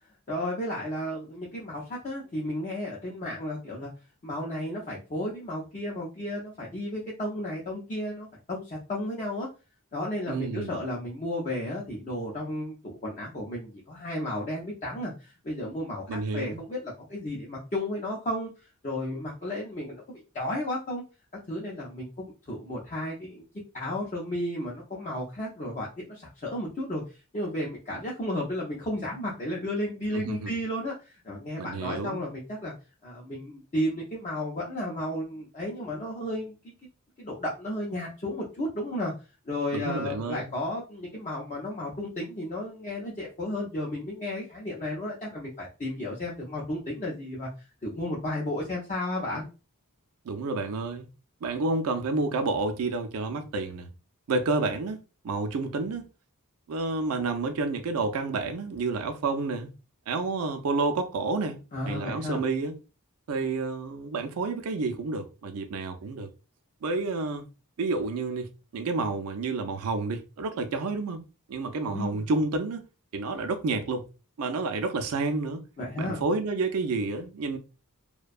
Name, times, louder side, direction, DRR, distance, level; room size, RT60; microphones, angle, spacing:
voice 1, 0.3-3.9 4.2-9.5 9.9-18.5 18.8-21.0 21.5-23.4 23.7-27.0 27.3-32.7 33.0-36.7 37.2-39.1 39.5-47.5 47.8-49.5 61.7-62.4 71.9-72.2 75.8-76.2, left 1 dB, 35° left, 0.5 m, -33 dB
voice 2, 10.3-10.7 16.1-16.6 30.1-30.5 31.6-32.2 39.7-40.5 50.2-51.1 51.4-53.9 54.3-55.0 55.2-56.0 56.7-59.7 60.1-61.6 61.9-62.8 63.3-66.3 66.8-67.5 67.8-71.2 71.5-72.8 73.1-74.0 74.4-75.6 76.0-77.6, right 3 dB, 75° right, 0.4 m, -29 dB
2.6 x 2.1 x 2.4 m
head